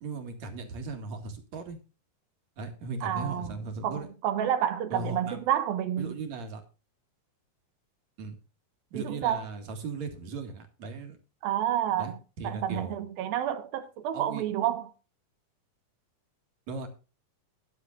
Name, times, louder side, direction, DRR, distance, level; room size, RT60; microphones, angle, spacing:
voice 1, 0.0-1.8 2.6-4.1 4.9-5.4 6.0-6.6 8.2-8.3 8.9-11.2 12.0-13.0 14.1-14.4 16.7-16.9, right 3 dB, 55° right, 3.0 m, -37 dB
voice 2, 3.0-3.5 3.8-6.2 8.9-9.5 11.4-12.2 12.4-14.9, right 10 dB, 90° right, 3.0 m, -29 dB
21.5 x 7.4 x 2.4 m
omnidirectional pair, 4.1 m